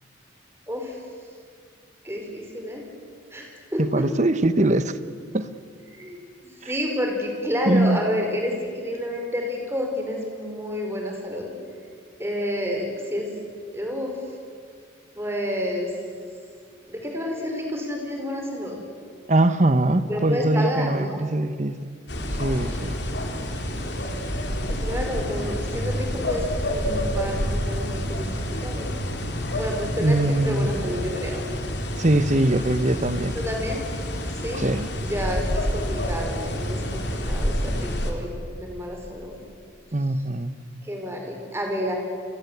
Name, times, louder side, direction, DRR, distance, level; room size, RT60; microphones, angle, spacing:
voice 1, 0.7-1.0 2.0-2.8 3.3-4.2 5.9-11.5 12.2-13.3 13.7-14.3 15.1-15.9 16.9-18.8 20.1-21.2 24.7-28.9 29.6-31.4 33.3-33.8 34.3-34.6 35.0-39.4 40.8-41.9, equal, 15° right, 2 dB, 4.9 m, -30 dB
voice 2, 3.8-4.9 5.3-5.5 6.6-6.7 7.7-8.0 19.3-21.9 22.4-23.0 30.0-30.8 32.0-33.4 34.6-34.9 39.9-40.5, right 1 dB, 35° right, 13 dB, 1.1 m, -22 dB
sound 1, 22.1-38.1, equal, 55° left, 3.5 m, -28 dB
29.5 x 23.5 x 8.2 m, 2.1 s
head